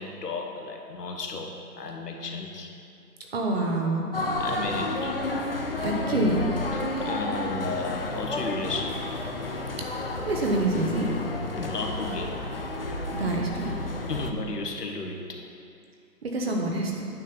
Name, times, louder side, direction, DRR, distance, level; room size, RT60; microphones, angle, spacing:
voice 1, 0.0-2.7 4.4-5.2 6.7-9.0 11.6-12.4 14.1-15.4, left 3 dB, 80° left, 2 dB, 1.5 m, -34 dB
voice 2, 3.3-4.1 5.8-6.5 10.2-11.1 13.1-13.7 16.2-17.1, right 2 dB, 40° right, 0 dB, 1.2 m, -26 dB
sound 1, 4.1-14.3, left 2 dB, 40° left, 0.5 m, -31 dB
9.3 x 4.3 x 7.0 m, 2.4 s
hypercardioid pair, 165°, 48 cm